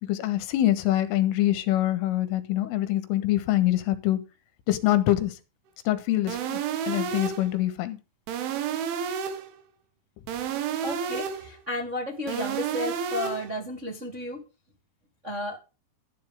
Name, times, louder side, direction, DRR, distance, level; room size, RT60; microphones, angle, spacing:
voice 1, 0.0-4.2 4.7-5.4 5.9-6.6 6.9-8.0, left 14 dB, 80° left, 3.8 m, -24 dB
sound 1, 6.3-7.5 8.3-9.5 10.3-11.5 12.3-13.5, right 8 dB, 75° right, 4.1 m, -31 dB
voice 2, 10.8-14.4 15.2-15.6, left 1 dB, 25° right, 1.7 m, -33 dB
12.5 x 12.5 x 3.6 m
omnidirectional pair, 5.8 m